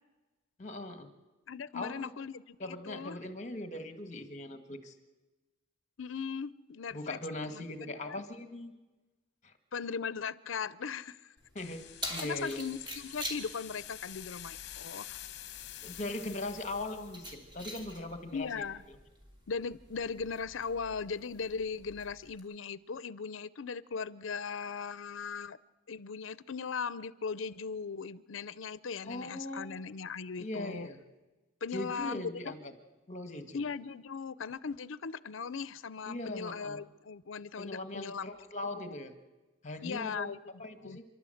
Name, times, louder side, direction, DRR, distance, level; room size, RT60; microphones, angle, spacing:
voice 1, 0.6-1.1 1.7-2.1 2.6-4.9 6.9-8.7 9.4-9.5 11.5-12.6 15.8-19.0 29.0-29.8 30.4-31.0 31.7-32.7 33.1-33.6 36.1-36.8 37.6-39.1 39.6-40.3 40.6-41.0, left 2 dB, 35° left, 1.7 m, -40 dB
voice 2, 1.5-3.2 6.0-7.2 7.5-8.2 9.7-11.3 12.2-15.2 18.3-18.8 19.5-25.6 25.9-30.9 31.6-32.5 33.5-38.3 38.6-39.0 39.8-41.0, left 5 dB, 75° left, 0.6 m, -38 dB
Keys jangling, 11.4-22.4, equal, 25° right, 3.2 m, -47 dB
sound 1, 11.6-17.2, left 12 dB, 60° left, 1.0 m, -48 dB
29.5 x 11.5 x 7.8 m
head